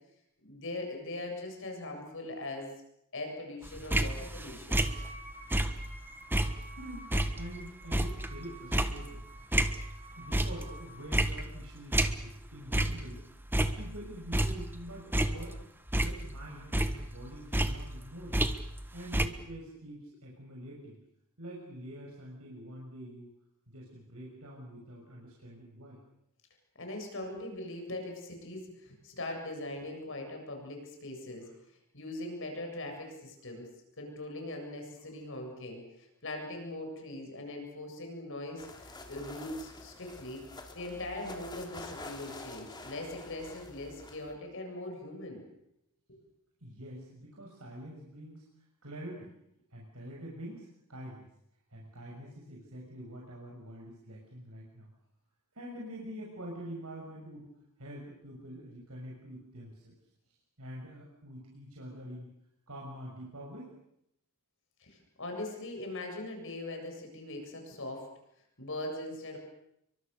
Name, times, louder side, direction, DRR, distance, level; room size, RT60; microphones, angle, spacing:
voice 1, 0.4-2.7 3.1-4.8 26.8-31.5 31.9-33.7 34.0-40.4 40.7-45.4 46.1-46.2 64.8-68.0 68.6-69.4, left 2 dB, 60° left, 3 dB, 7.7 m, -41 dB
sound 1, 3.7-6.0 6.3-10.0 10.3-10.8 11.1-12.5 12.7-13.1 13.4-14.8 15.1-16.5 16.7-18.9 19.1-19.3, right 1 dB, 10° right, 1.3 m, -30 dB
Wind instrument woodwind instrument, 4.7-11.1, right 2 dB, 25° right, 5.3 m, -51 dB
voice 2, 6.8-9.2 10.1-13.2 13.6-15.6 15.9-18.4 18.9-21.0 21.4-23.3 23.7-26.0 31.4-31.5 46.6-48.4 48.8-49.3 49.7-51.3 51.7-54.9 55.5-57.5 57.8-59.9 60.6-62.3 62.7-63.7, equal, 90° right, -2 dB, 6.4 m, -46 dB
sound 2, 38.6-44.3, left 2 dB, 20° left, 3.5 m, -47 dB
30.0 x 23.5 x 6.9 m, 0.77 s
head